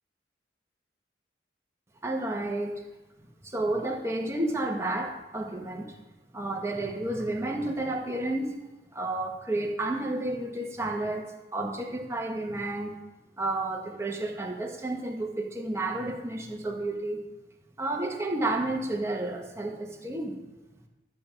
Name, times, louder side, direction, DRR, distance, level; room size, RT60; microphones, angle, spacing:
voice 1, 2.0-2.7 3.4-6.0 6.3-8.6 8.9-11.2 11.5-12.9 13.4-17.2 17.8-20.4, right 2 dB, 15° right, 1 dB, 1.2 m, -31 dB
12.5 x 5.2 x 7.3 m, 1.1 s
head